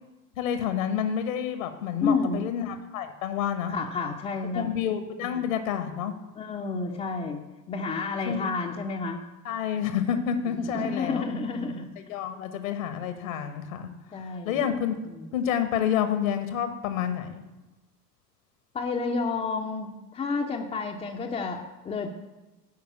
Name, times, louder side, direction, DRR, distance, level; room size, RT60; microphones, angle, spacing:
voice 1, 0.4-3.7 4.5-6.1 8.2-8.5 9.4-11.2 12.1-15.0 15.3-17.4, left 9 dB, 55° left, 9 dB, 1.2 m, -29 dB
voice 2, 2.0-2.4 3.7-4.7 5.4-5.5 6.4-9.2 10.5-11.9 14.1-14.7 15.0-15.3 18.7-22.1, left 4 dB, 15° left, 0 dB, 0.7 m, -30 dB
9.3 x 5.2 x 8.0 m, 1.1 s
figure-of-eight pair, 85°, 48 cm